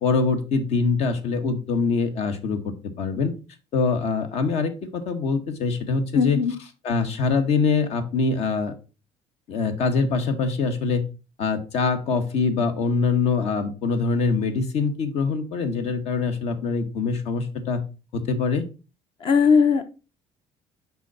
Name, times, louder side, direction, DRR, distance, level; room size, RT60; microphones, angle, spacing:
voice 1, 0.0-3.3 3.7-6.4 6.8-8.7 9.5-11.0 11.4-17.8 18.1-18.7, left 4 dB, 65° left, 8 dB, 1.2 m, -24 dB
voice 2, 6.1-6.5 19.2-19.9, left 6 dB, 50° left, 9 dB, 0.8 m, -19 dB
6.1 x 4.5 x 4.1 m, 0.32 s
cardioid pair, 120°, 12 cm